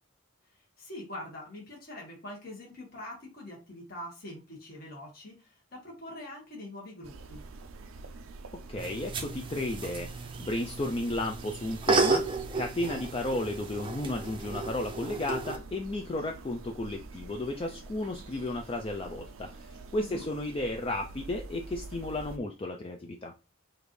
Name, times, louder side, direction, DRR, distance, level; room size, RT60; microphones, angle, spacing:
voice 1, 0.5-7.4 20.0-20.3, left 1 dB, 50° left, -2 dB, 1.5 m, -44 dB
sound 1, 7.0-22.4, right 3 dB, 85° right, 0.5 m, -47 dB
voice 2, 8.7-12.3 12.5-23.3, left 1 dB, 25° left, 3 dB, 0.4 m, -33 dB
sound 2, 8.8-15.6, right 3 dB, 25° right, 0.6 m, -33 dB
5.0 x 2.6 x 3.1 m, 0.31 s
head